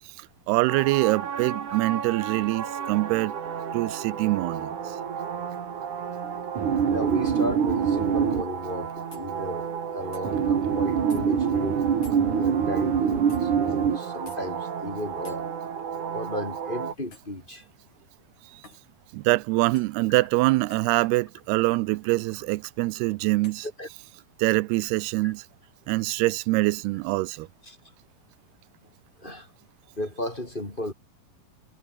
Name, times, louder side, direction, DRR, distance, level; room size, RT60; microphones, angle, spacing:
voice 1, 0.5-3.3 3.7-5.0 19.1-23.7 24.4-25.4 25.9-27.5, right 21 dB, 85° right, 2.6 m, -24 dB
sound 1, 0.7-16.9, right 7 dB, 55° right, 4.0 m, -27 dB
voice 2, 6.9-11.8 12.1-15.5 16.1-17.6 23.8-23.9 25.2-25.3 27.7-27.8 29.2-29.5 30.0-30.9, left 1 dB, 15° left, 2.6 m, -34 dB
sound 2, 9.1-9.3 10.1-10.3 11.1-11.2 12.0-12.2 13.3-13.4 14.3-14.4 15.2-15.4 17.1-17.4 18.6-18.9 19.7-20.0 20.7-20.9 22.5-22.6 23.4-23.6, left 4 dB, 45° left, 8.1 m, -50 dB
omnidirectional pair, 4.6 m